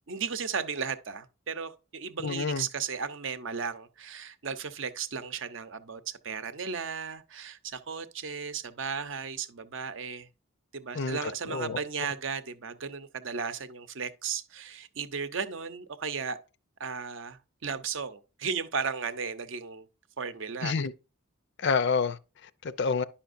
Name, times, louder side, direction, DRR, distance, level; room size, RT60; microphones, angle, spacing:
voice 1, 0.1-10.3 10.7-16.4 16.8-19.9 20.2-20.7, right 6 dB, 65° right, 0.7 m, -35 dB
voice 2, 2.2-2.7 10.9-11.8 20.6-20.9 21.6-23.0, left 5 dB, 55° left, 0.4 m, -29 dB
10.0 x 5.7 x 2.5 m
head